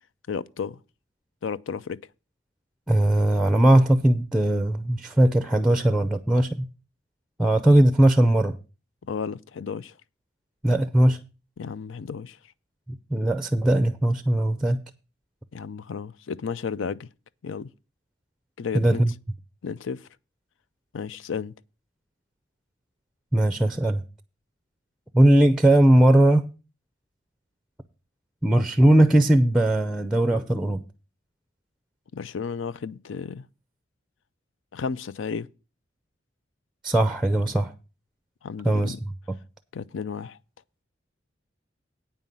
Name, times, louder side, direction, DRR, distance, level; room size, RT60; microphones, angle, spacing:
voice 1, 0.3-0.8 1.4-2.0 9.0-9.9 11.6-12.4 15.5-17.1 17.4-17.7 18.6-19.0 19.6-20.1 20.9-21.5 32.1-33.5 34.7-35.5 38.4-39.0 39.7-40.4, left 5 dB, 85° left, 0.5 m, -33 dB
voice 2, 2.9-6.7 7.4-8.6 10.6-11.2 12.9-14.8 18.7-19.1 23.3-24.0 25.1-26.5 28.4-30.8 36.8-37.7 38.6-38.9, right 1 dB, ahead, 0.5 m, -19 dB
9.1 x 5.5 x 7.5 m
head